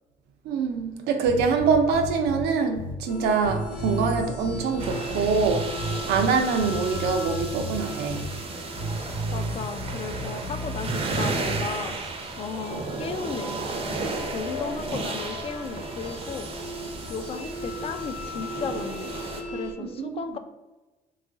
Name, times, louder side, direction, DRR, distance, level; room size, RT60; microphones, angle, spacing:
voice 1, 0.4-5.7 6.1-8.3 19.9-20.2, right 5 dB, 80° right, 5 dB, 0.5 m, -24 dB
sound 1, 1.2-2.4 2.7-2.9 3.4-6.3 6.6-7.8 8.1-8.3 8.7-11.6, equal, 55° left, 0.9 m, -33 dB
sound 2, 3.1-19.7, left 1 dB, 90° left, 0.9 m, -38 dB
sound 3, 4.8-19.4, right 3 dB, 35° right, 0.5 m, -34 dB
voice 2, 9.3-11.9 12.4-16.5 17.1-20.4, left 5 dB, 35° left, 8 dB, 0.3 m, -35 dB
3.0 x 2.4 x 3.7 m, 1.1 s
cardioid pair, 110°, 17 cm